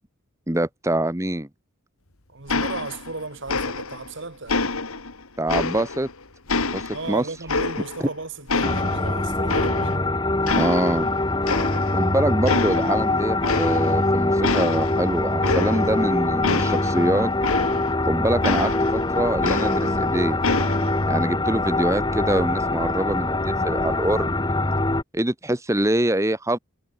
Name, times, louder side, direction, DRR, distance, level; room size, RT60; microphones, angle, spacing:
voice 1, 0.5-1.5 5.4-6.1 6.7-7.2 10.5-11.1 11.9-17.3 18.1-20.4 21.1-24.3 25.1-26.6, right 1 dB, 15° right, 1.3 m, -24 dB
voice 2, 2.3-4.8 6.9-10.1, right 3 dB, 55° right, 1.6 m, -35 dB
sound 1, 2.5-3.2 3.5-4.1 4.5-6.1 6.5-8.1 8.5-10.1 10.5-11.1 11.5-12.1 12.5-13.0 13.4-14.1 14.4-18.0 18.4-20.1 20.4-21.0, left 3 dB, 80° left, 2.7 m, -27 dB
sound 2, 8.6-25.0, left 2 dB, 20° left, 1.1 m, -23 dB
head